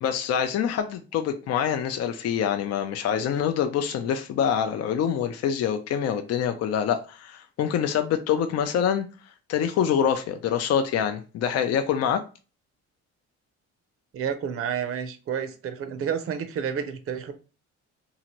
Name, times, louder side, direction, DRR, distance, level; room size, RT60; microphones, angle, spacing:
voice 1, 0.0-9.0 9.5-12.2, left 8 dB, 55° left, 0.4 m, -25 dB
voice 2, 14.1-17.3, right 7 dB, 50° right, 0.5 m, -30 dB
2.8 x 2.5 x 2.8 m
cardioid pair, 90°, 30 cm